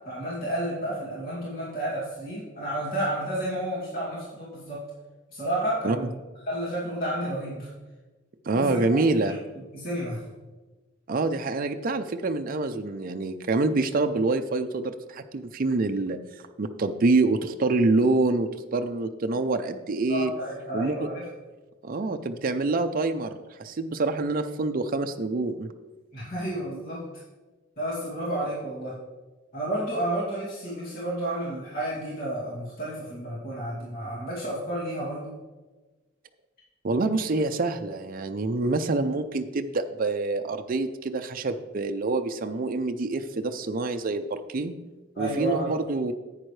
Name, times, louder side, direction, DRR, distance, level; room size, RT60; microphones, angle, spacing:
voice 1, 0.1-4.8 5.3-6.2 6.5-7.7 8.5-9.4 9.7-10.2 20.1-21.2 26.1-27.0 27.8-29.0 29.5-35.4 45.1-45.8, right 1 dB, 50° left, -7 dB, 2.5 m, -31 dB
voice 2, 8.5-9.3 11.1-16.2 16.6-20.3 20.7-21.1 21.8-25.7 36.8-44.7 45.2-46.1, right 3 dB, 45° right, 6 dB, 0.5 m, -26 dB
10.5 x 8.9 x 3.2 m, 1.2 s
head